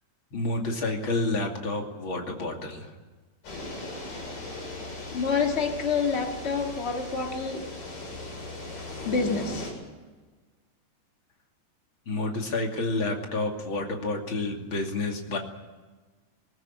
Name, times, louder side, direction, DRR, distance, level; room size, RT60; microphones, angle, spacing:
voice 1, 0.3-2.9 12.1-15.4, left 2 dB, 35° left, 2 dB, 2.7 m, -29 dB
sound 1, 3.4-9.7, left 2 dB, 50° left, 9.1 m, -38 dB
voice 2, 5.1-7.6 9.0-9.7, left 5 dB, 75° left, 3 dB, 0.6 m, -27 dB
21.5 x 19.5 x 8.8 m, 1.3 s
omnidirectional pair, 5.0 m